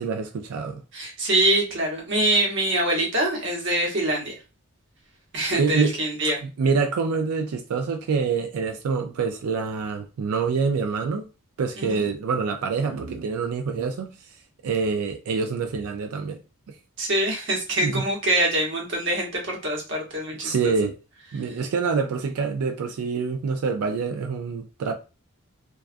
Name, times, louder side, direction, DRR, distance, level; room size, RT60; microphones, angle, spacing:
voice 1, 0.0-0.8 5.5-5.9 6.6-11.3 11.6-14.2 14.6-16.4 16.7-16.8 17.8-18.0 20.4-21.0 21.3-24.9, right 5 dB, 85° right, 0.4 m, -26 dB
voice 2, 0.9-4.3 5.3-6.4 11.8-12.0 17.0-20.7, right 1 dB, 55° right, 1.0 m, -24 dB
2.3 x 2.2 x 2.4 m
head